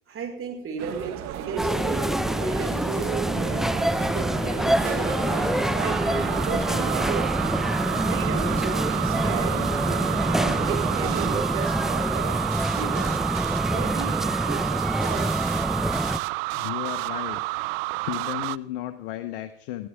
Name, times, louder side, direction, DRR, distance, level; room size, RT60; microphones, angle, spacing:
voice 1, 0.1-3.7 4.0-7.3 7.9-9.8 10.2-12.4 12.7-13.3 13.7-15.5, right 6 dB, 50° right, 2 dB, 5.0 m, -34 dB
sound 1, 0.8-11.4, right 12 dB, 65° right, 1.3 m, -35 dB
sound 2, 1.6-16.2, equal, ahead, 0.7 m, -26 dB
sound 3, 2.7-18.6, right 23 dB, 80° right, 0.5 m, -31 dB
voice 2, 16.5-17.4 17.7-19.9, left 14 dB, 80° left, 9 dB, 1.0 m, -34 dB
21.0 x 14.5 x 3.6 m, 0.66 s
hypercardioid pair, 70°, 29 cm